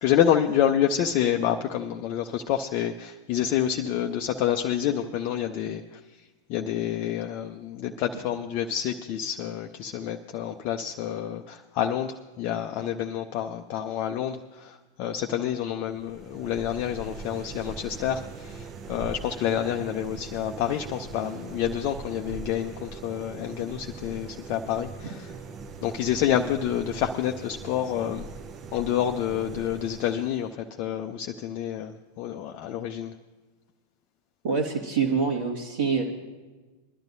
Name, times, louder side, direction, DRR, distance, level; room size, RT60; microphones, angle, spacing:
voice 1, 0.0-6.0 6.5-25.3 25.8-28.3 28.7-33.1, left 10 dB, 40° left, 4 dB, 0.5 m, -28 dB
sound 1, 15.9-30.6, right 4 dB, 30° right, 0.7 m, -41 dB
voice 2, 34.4-36.0, right 5 dB, 50° right, -3 dB, 1.6 m, -25 dB
22.0 x 12.0 x 2.6 m, 1.3 s
figure-of-eight pair, 90°, 0 cm